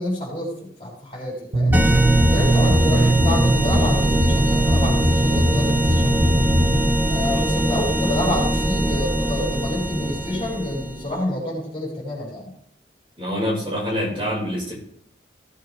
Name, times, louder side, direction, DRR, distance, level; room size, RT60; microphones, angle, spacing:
voice 1, 0.0-1.9 2.2-6.4 7.1-12.5, left 1 dB, 30° left, -3 dB, 6.2 m, -28 dB
sound 1, 1.5-6.9, right 1 dB, 70° right, 1.2 m, -20 dB
sound 2, 1.7-11.1, right 1 dB, 10° right, 1.0 m, -22 dB
voice 2, 13.2-14.7, equal, 30° right, -4 dB, 5.3 m, -26 dB
17.5 x 9.0 x 3.5 m, 0.64 s
head